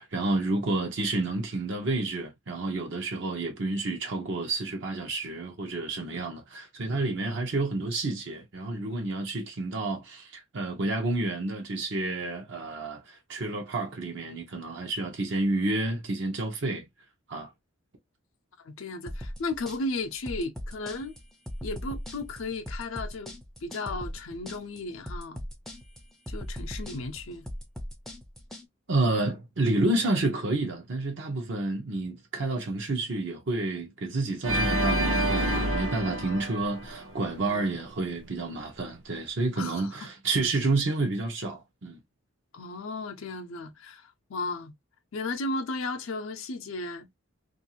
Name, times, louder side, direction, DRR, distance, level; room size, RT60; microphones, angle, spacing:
voice 1, 0.0-16.9 17.3-17.5 28.9-42.0, right 2 dB, 60° right, 0.7 m, -30 dB
voice 2, 18.6-21.2 21.6-23.3 23.6-25.4 26.3-27.5 36.3-36.5 37.4-37.8 39.6-40.1 42.5-44.7 45.1-47.1, left 2 dB, 75° left, 0.5 m, -35 dB
sound 1, 19.1-28.7, equal, ahead, 0.4 m, -39 dB
Organ, 34.4-37.6, right 1 dB, 80° right, 1.0 m, -28 dB
2.5 x 2.4 x 2.7 m
head